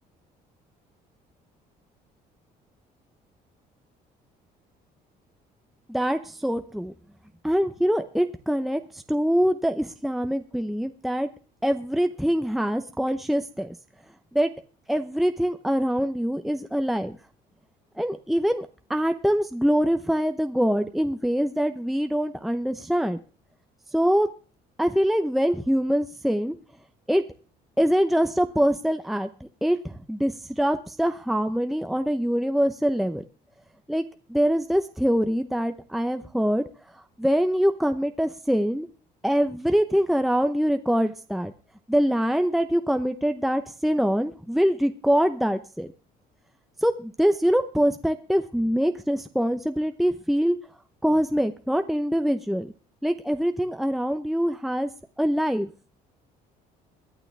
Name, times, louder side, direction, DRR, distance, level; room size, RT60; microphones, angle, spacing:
voice 1, 5.9-6.9 7.4-11.3 11.6-13.7 14.3-14.5 14.9-17.1 18.0-23.2 23.9-24.3 24.8-26.5 27.1-27.2 27.8-29.3 29.6-33.2 33.9-34.0 34.3-36.7 37.2-38.9 39.2-41.5 41.9-45.9 46.8-50.6 51.0-52.7 53.0-54.9 55.2-55.7, equal, ahead, 7 dB, 0.8 m, -24 dB
23.5 x 9.0 x 3.4 m, 0.38 s
cardioid pair, 110°, 17 cm